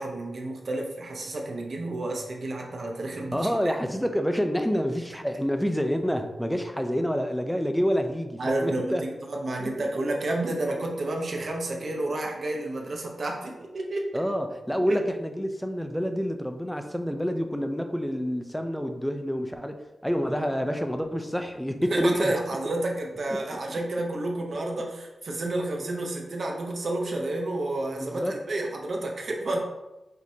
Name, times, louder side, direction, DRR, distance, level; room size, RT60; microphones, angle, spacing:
voice 1, 0.0-3.4 8.4-14.2 14.9-15.0 21.9-29.6, right 2 dB, 55° right, 1 dB, 0.7 m, -30 dB
voice 2, 3.3-9.0 9.6-9.9 14.1-22.3 23.3-23.4 23.7-23.8 27.9-28.4, equal, ahead, 6 dB, 0.4 m, -28 dB
5.1 x 2.8 x 2.6 m, 1.0 s
wide cardioid pair, 125°, 0 cm